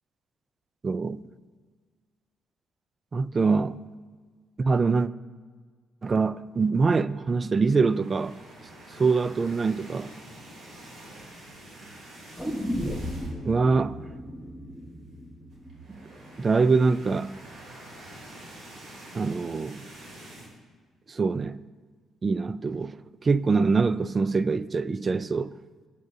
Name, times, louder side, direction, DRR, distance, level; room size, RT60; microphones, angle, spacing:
voice 1, 0.8-1.2 3.1-3.8 4.6-5.1 6.0-8.4 9.0-10.1 13.5-14.0 15.9-16.0 16.4-17.4 19.1-19.9 21.1-21.6 22.2-25.5, right 4 dB, 35° right, 0.3 m, -24 dB
sound 1, 7.7-13.6 13.9-14.1 14.4-14.5 15.5-20.6, right 1 dB, 65° right, 3.0 m, -47 dB
sound 2, 12.4-16.4 16.7-16.8, equal, 10° right, 1.5 m, -35 dB
18.0 x 8.2 x 2.7 m
cardioid pair, 90°, 0 cm